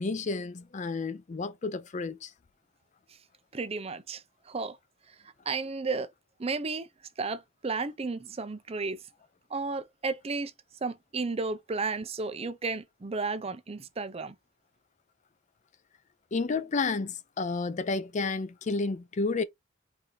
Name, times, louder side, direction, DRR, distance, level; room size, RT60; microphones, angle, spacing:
voice 1, 0.0-2.3 16.3-19.4, left 3 dB, 35° left, 0.4 m, -31 dB
voice 2, 3.5-4.8 5.5-6.1 6.4-6.9 7.2-9.0 9.5-10.5 10.8-14.4, right 4 dB, 30° right, 0.5 m, -33 dB
4.6 x 2.6 x 3.8 m
head